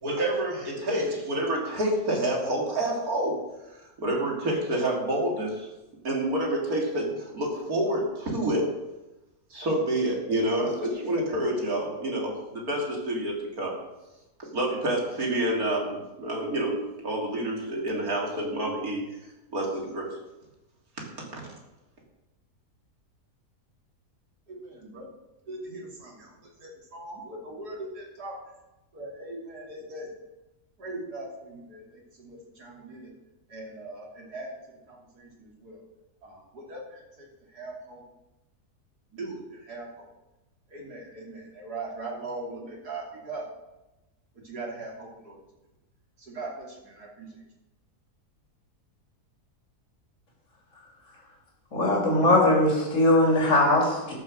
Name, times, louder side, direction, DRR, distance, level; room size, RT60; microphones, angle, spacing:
voice 1, 0.0-3.4 3.7-5.7 6.0-8.7 9.5-13.8 14.4-19.2 19.5-20.2 21.2-21.4, right 1 dB, 65° right, -1 dB, 3.2 m, -28 dB
voice 2, 24.5-25.1 25.5-26.3 26.6-28.3 28.9-30.1 30.8-33.1 33.5-34.5 34.9-35.8 36.2-37.3 37.5-38.0 39.1-39.9 40.7-43.4 44.4-45.4 46.2-47.3, right 2 dB, 90° right, -2 dB, 3.6 m, -40 dB
voice 3, 51.7-54.1, left 1 dB, 50° left, -2 dB, 3.4 m, -20 dB
13.0 x 7.3 x 6.4 m, 0.99 s
omnidirectional pair, 1.6 m